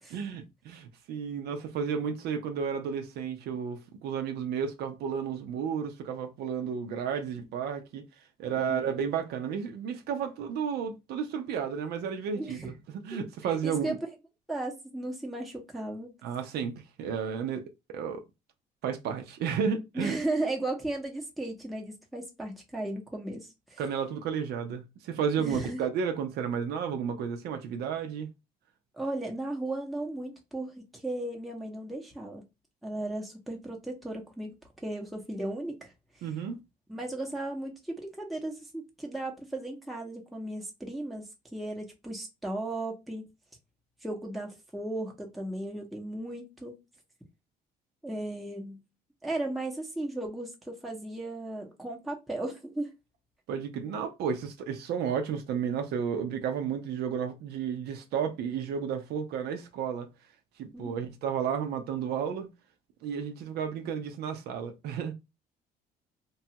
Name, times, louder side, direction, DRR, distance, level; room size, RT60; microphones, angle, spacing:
voice 1, 0.1-8.0 8.4-14.0 16.2-17.6 17.9-18.2 18.8-20.2 23.8-28.3 36.2-36.6 53.5-60.1 60.6-62.5 63.0-65.1, right 7 dB, 75° right, 0.5 m, -32 dB
voice 2, 8.6-9.0 12.4-12.7 13.4-13.9 14.5-16.1 19.9-23.8 25.4-25.8 28.9-32.5 32.8-36.2 36.9-43.3 44.0-46.8 48.0-48.8 49.2-52.9 60.7-61.0, right 2 dB, ahead, 0.7 m, -36 dB
3.0 x 2.3 x 2.8 m
cardioid pair, 110°, 17 cm